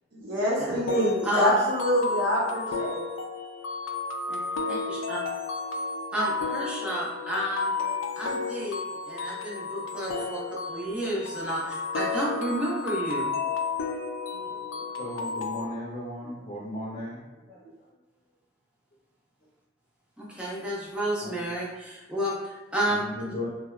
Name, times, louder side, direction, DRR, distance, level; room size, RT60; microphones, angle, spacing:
voice 1, 0.1-3.0, equal, 70° right, -6 dB, 0.8 m, -25 dB
sound 1, 0.9-15.7, left 4 dB, 80° left, 0.3 m, -32 dB
voice 2, 1.2-1.5 4.3-4.4 4.7-5.2 6.1-7.7 8.2-13.3 20.2-23.3, equal, 5° right, -6 dB, 0.5 m, -31 dB
voice 3, 14.3-17.9 21.2-21.4 22.9-23.5, left 1 dB, 50° left, -8 dB, 0.7 m, -37 dB
2.7 x 2.1 x 2.3 m, 1.1 s
head